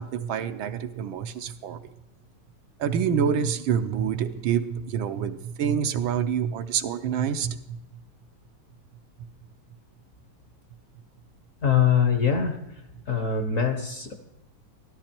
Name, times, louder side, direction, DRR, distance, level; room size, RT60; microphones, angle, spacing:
voice 1, 0.0-1.8 2.8-7.8, right 8 dB, 75° right, 8 dB, 1.4 m, -27 dB
voice 2, 11.6-12.6 13.1-14.1, left 7 dB, 45° left, 7 dB, 1.2 m, -23 dB
13.5 x 13.0 x 4.4 m, 0.92 s
omnidirectional pair, 2.4 m